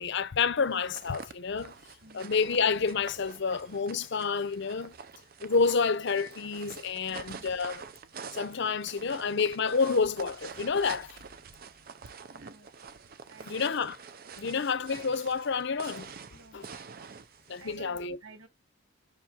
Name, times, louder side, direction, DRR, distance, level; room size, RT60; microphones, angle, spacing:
voice 1, 0.0-1.7 2.1-4.9 5.4-7.8 8.3-11.2 13.5-14.0 14.4-16.1 16.5-16.7 17.5-18.2, left 5 dB, 55° left, 0.6 m, -29 dB
sound 1, 0.7-17.8, right 6 dB, 45° right, 0.5 m, -47 dB
voice 2, 2.0-2.4 7.1-7.6 12.2-12.7 13.3-13.8 16.3-16.6 17.6-18.5, right 3 dB, 80° right, 1.2 m, -53 dB
7.1 x 5.9 x 2.9 m
head